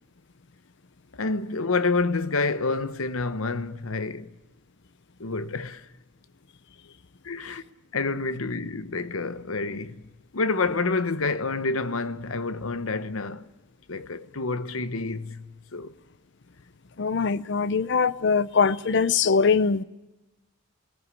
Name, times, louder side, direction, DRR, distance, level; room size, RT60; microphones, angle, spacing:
voice 1, 1.1-4.3 5.2-5.9 7.2-7.6 7.9-10.0 10.3-13.4 13.9-15.9, left 3 dB, 85° left, 1.0 m, -28 dB
voice 2, 17.0-19.8, left 5 dB, 60° left, 0.6 m, -22 dB
18.5 x 16.5 x 9.6 m
head